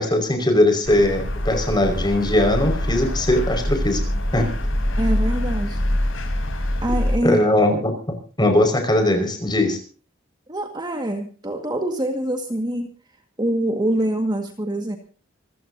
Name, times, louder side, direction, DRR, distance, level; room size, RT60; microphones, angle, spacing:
voice 1, 0.0-4.0 4.3-4.5 7.2-7.9 8.4-9.8, left 1 dB, 20° left, 4 dB, 5.3 m, -19 dB
sound 1, 0.9-7.2, left 1 dB, 85° left, 5.8 m, -24 dB
voice 2, 5.0-5.8 6.8-7.4 10.5-12.9 13.4-15.0, right 1 dB, 20° right, 4 dB, 1.8 m, -24 dB
26.5 x 16.0 x 2.8 m, 0.39 s
head